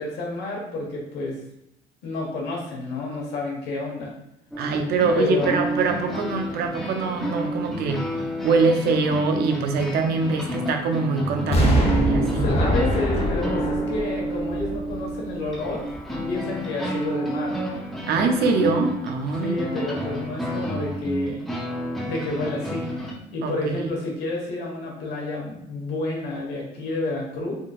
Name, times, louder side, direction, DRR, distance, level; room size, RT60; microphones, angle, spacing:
voice 1, 0.0-1.4 2.0-4.1 5.1-5.6 11.4-15.8 16.3-17.5 19.4-21.5 22.0-22.9 23.3-27.5, left 2 dB, 80° left, -2 dB, 1.1 m, -30 dB
sound 1, 4.5-23.1, right 1 dB, ahead, 0.7 m, -30 dB
voice 2, 4.6-8.0 8.4-12.5 18.1-19.6 23.4-23.9, right 4 dB, 70° right, 4 dB, 0.6 m, -24 dB
Explosion, 11.5-15.4 15.9-16.0, equal, 35° left, 0.8 m, -24 dB
3.7 x 2.6 x 2.3 m, 0.83 s
cardioid pair, 110°, 17 cm